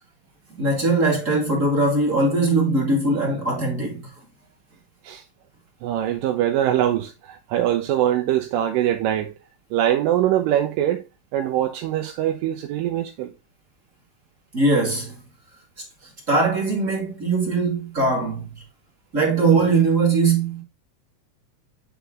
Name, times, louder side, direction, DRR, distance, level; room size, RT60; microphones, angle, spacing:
voice 1, 0.6-4.1 14.5-15.2 16.3-18.5 19.1-20.6, right 3 dB, 30° right, 1.7 m, -20 dB
voice 2, 5.8-9.3 9.7-11.0 11.3-13.3, right 12 dB, 85° right, 2.3 m, -23 dB
7.9 x 4.1 x 3.6 m
omnidirectional pair, 4.0 m